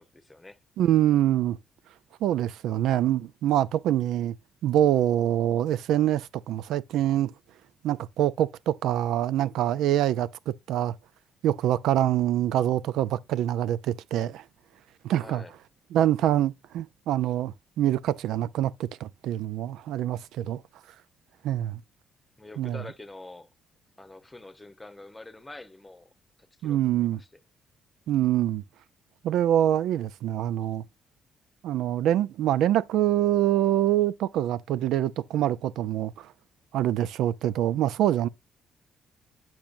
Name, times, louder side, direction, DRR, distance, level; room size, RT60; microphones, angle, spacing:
voice 1, 0.0-0.6 15.2-15.5 22.4-23.5 24.0-26.1 26.4-27.3, left 2 dB, 10° left, 1.0 m, -46 dB
voice 2, 0.8-1.6 2.2-4.3 4.6-7.3 7.8-10.9 11.4-14.4 15.0-15.4 15.9-20.6 21.4-21.8 22.6-22.8 26.6-27.2 28.1-28.6 29.2-30.8 31.6-36.3 36.7-38.3, right 12 dB, 90° right, 0.4 m, -25 dB
8.7 x 6.0 x 2.6 m
cardioid pair, 110°, 0 cm